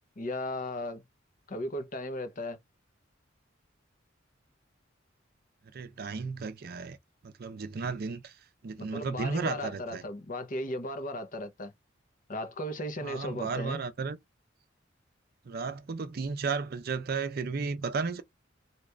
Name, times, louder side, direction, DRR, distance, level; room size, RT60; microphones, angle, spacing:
voice 1, 0.2-1.0 1.5-2.6 8.9-11.7 12.3-13.8, left 1 dB, 45° left, 0.7 m, -36 dB
voice 2, 5.7-7.0 7.2-8.4 8.6-10.0 13.0-14.2 15.5-18.2, right 4 dB, 50° right, 0.5 m, -34 dB
2.8 x 2.5 x 3.2 m
head